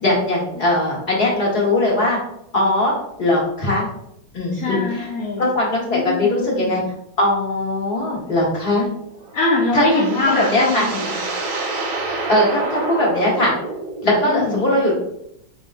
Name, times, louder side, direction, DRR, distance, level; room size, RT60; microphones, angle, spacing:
voice 1, 0.0-2.2 2.5-3.9 4.3-5.1 5.4-6.8 7.2-8.9 9.7-10.0 10.3-10.9 12.1-13.5 14.0-14.9, left 1 dB, 30° left, -4 dB, 1.3 m, -20 dB
voice 2, 4.5-5.5 5.9-6.7 9.3-11.2 14.3-14.7, left 3 dB, 70° left, -3 dB, 0.8 m, -23 dB
sound 1, 9.2-14.3, right 3 dB, 65° right, 1.4 m, -28 dB
4.9 x 3.7 x 2.5 m, 0.78 s
omnidirectional pair, 2.2 m